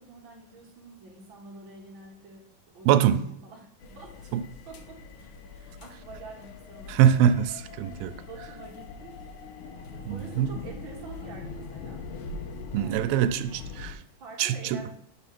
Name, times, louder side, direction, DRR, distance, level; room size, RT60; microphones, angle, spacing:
voice 1, 0.0-2.4 2.7-4.3 4.7-7.1 7.8-9.1 9.6-9.8 10.1-12.1 12.7-13.2 13.8-14.9, right 3 dB, 45° right, -2 dB, 1.8 m, -47 dB
voice 2, 2.9-3.3 4.3-4.4 6.9-8.1 10.1-10.5 12.7-14.0 14.4-14.8, right 10 dB, 90° right, 10 dB, 2.3 m, -23 dB
sound 1, 3.8-13.9, left 4 dB, 75° left, 2.0 m, -42 dB
7.7 x 3.4 x 6.0 m, 0.73 s
omnidirectional pair, 4.0 m